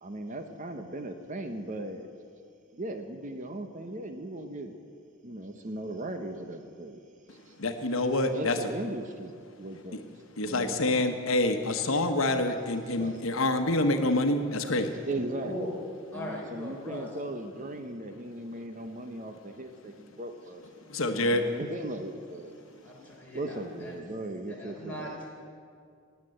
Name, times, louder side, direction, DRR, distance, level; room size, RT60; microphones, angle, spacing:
voice 1, 0.0-2.1 2.7-4.7 5.2-7.0 7.3-7.5 8.3-10.0 10.4-10.8 13.0-13.2 15.1-15.5 16.1-20.6 21.2-22.5 23.3-25.1, right 1 dB, 40° right, 6 dB, 0.9 m, -38 dB
voice 2, 7.6-8.6 10.4-14.9 20.9-21.4, left 2 dB, 85° left, 7 dB, 1.1 m, -26 dB
voice 3, 16.1-17.1 22.8-24.0 24.5-25.3, equal, 10° left, -4 dB, 3.6 m, -40 dB
19.0 x 8.3 x 7.7 m, 2.3 s
head